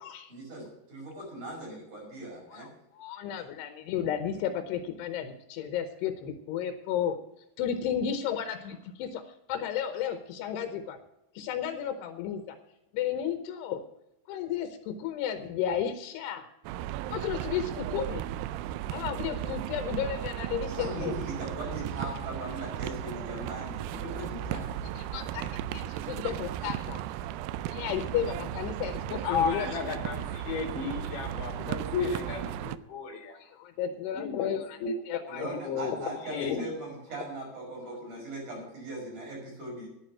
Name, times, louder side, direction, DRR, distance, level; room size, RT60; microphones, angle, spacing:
voice 1, 0.3-2.7 20.6-24.6 26.2-26.3 26.6-26.7 35.3-39.9, right 1 dB, 50° right, -2 dB, 7.2 m, -39 dB
voice 2, 3.0-7.2 7.6-9.2 9.5-11.0 11.3-12.6 12.9-13.8 14.3-16.5 17.1-18.2 18.9-21.1 25.1-25.5 25.7-27.0 27.7-29.8 33.3-34.8 35.1-36.6, left 9 dB, 85° left, 8 dB, 2.9 m, -33 dB
sound 1, 16.6-32.8, right 11 dB, 85° right, 2.1 m, -35 dB
voice 3, 29.2-33.4 34.1-35.0 36.3-36.7, left 5 dB, 60° left, 4 dB, 3.1 m, -33 dB
10.5 x 9.1 x 7.4 m, 0.85 s
omnidirectional pair, 4.7 m